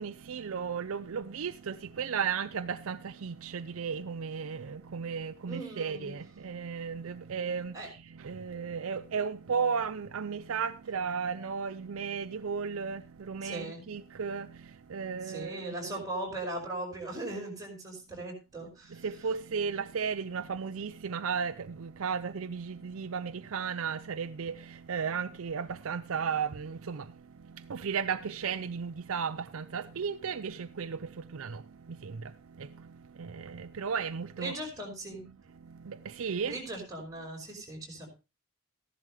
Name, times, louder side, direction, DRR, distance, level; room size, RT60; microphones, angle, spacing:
voice 1, 0.0-16.0 18.9-34.6 35.6-36.6, right 6 dB, 65° right, 0.5 m, -35 dB
voice 2, 5.5-6.1 7.7-7.9 13.4-13.9 15.2-19.1 34.4-35.3 36.4-38.1, right 2 dB, 15° right, 5.5 m, -39 dB
15.0 x 11.0 x 3.2 m
head